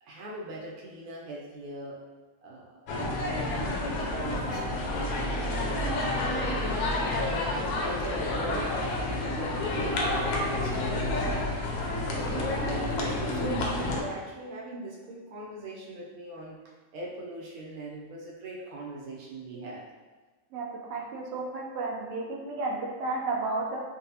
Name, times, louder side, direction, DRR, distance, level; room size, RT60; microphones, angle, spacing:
voice 1, 0.0-2.0 2.4-5.4 5.7-8.7 9.1-11.8 12.2-16.6 16.9-19.9, right 2 dB, 90° right, -3 dB, 1.2 m, -40 dB
sound 1, 2.9-14.0, left 2 dB, 85° left, 1.0 m, -29 dB
voice 2, 12.2-12.9 20.5-20.6 20.9-23.8, right 3 dB, 65° right, -1 dB, 0.7 m, -33 dB
3.9 x 2.1 x 2.7 m, 1.3 s
omnidirectional pair, 1.5 m